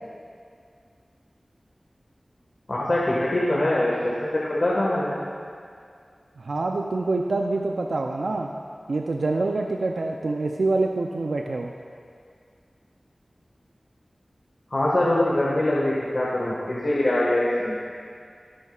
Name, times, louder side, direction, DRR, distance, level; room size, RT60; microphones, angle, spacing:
voice 1, 2.7-5.1 14.7-17.8, left 1 dB, 55° left, -6 dB, 1.6 m, -23 dB
voice 2, 6.4-8.5 8.9-11.7, right 3 dB, 90° right, 1 dB, 0.5 m, -26 dB
22.0 x 8.3 x 2.4 m, 2.2 s
wide cardioid pair, 70°, 0 cm